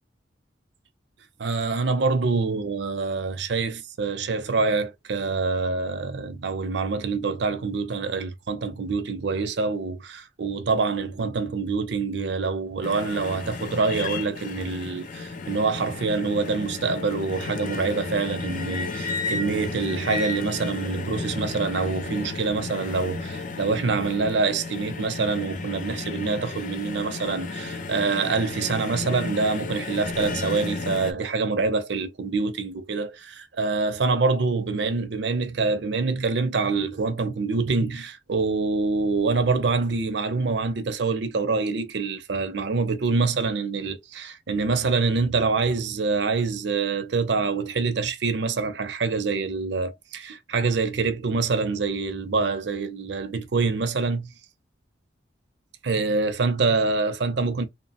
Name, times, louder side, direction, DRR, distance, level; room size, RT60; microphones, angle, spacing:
voice 1, 1.4-54.3 55.8-57.7, right 4 dB, 70° right, 0.5 m, -26 dB
sound 1, 12.8-31.1, left 3 dB, 45° left, 0.4 m, -33 dB
2.8 x 2.0 x 2.8 m
head